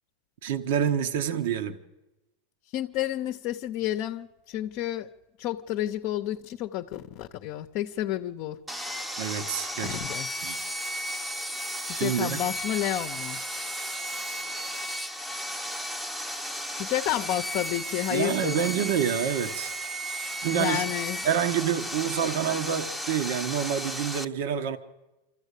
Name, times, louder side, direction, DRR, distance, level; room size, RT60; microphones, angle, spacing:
voice 1, 0.4-1.8 9.2-10.0 10.4-10.6 11.9-12.4 18.1-19.7 20.4-20.8 21.2-24.8, right 8 dB, 70° right, 1.2 m, -27 dB
voice 2, 2.7-5.1 5.4-8.6 9.8-10.3 11.8-13.4 16.7-18.6 20.5-21.2, left 13 dB, 50° left, 0.7 m, -30 dB
Sawing, 8.7-24.2, equal, 5° right, 0.8 m, -34 dB
25.5 x 14.0 x 8.3 m
supercardioid pair, 135°, 0 cm